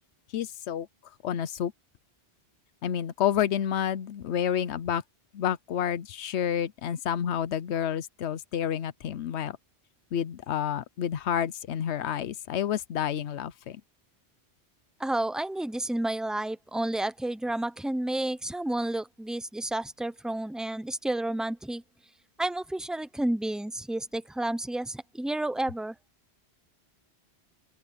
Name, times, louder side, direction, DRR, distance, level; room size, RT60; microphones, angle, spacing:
voice 1, 0.3-0.9 1.2-1.7 2.8-5.0 5.3-9.6 10.1-13.8, left 9 dB, 90° left, 1.0 m, -29 dB
voice 2, 15.0-21.8 22.4-25.9, right 1 dB, ahead, 0.7 m, -31 dB
open air
omnidirectional pair, 1.1 m